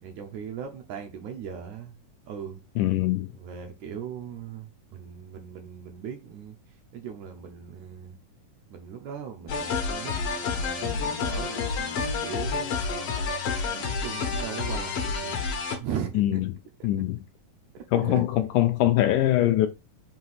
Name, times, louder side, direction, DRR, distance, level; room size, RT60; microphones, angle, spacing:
voice 1, 0.0-2.0 2.3-2.6 3.3-8.2 8.7-13.0 13.5-15.5 15.8-16.4 16.8-16.9 17.7-18.2, right 8 dB, 75° right, 1.8 m, -39 dB
voice 2, 2.8-3.3 16.2-16.5 16.8-17.2 17.9-19.7, left 14 dB, 80° left, 1.8 m, -23 dB
sound 1, 9.5-15.8, left 4 dB, 65° left, 1.6 m, -29 dB
6.1 x 2.8 x 5.6 m
omnidirectional pair, 4.0 m